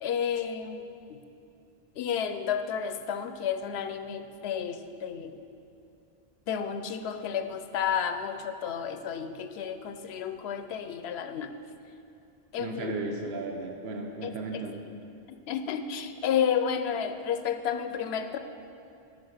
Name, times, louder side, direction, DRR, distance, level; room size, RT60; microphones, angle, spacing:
voice 1, 0.0-1.2 2.0-5.4 6.5-11.5 12.5-13.0 14.2-14.9 15.5-18.4, left 8 dB, 90° left, 9 dB, 0.8 m, -31 dB
voice 2, 12.6-14.8, right 2 dB, 90° right, 2 dB, 1.0 m, -35 dB
9.4 x 5.2 x 6.4 m, 2.7 s
omnidirectional pair, 1.0 m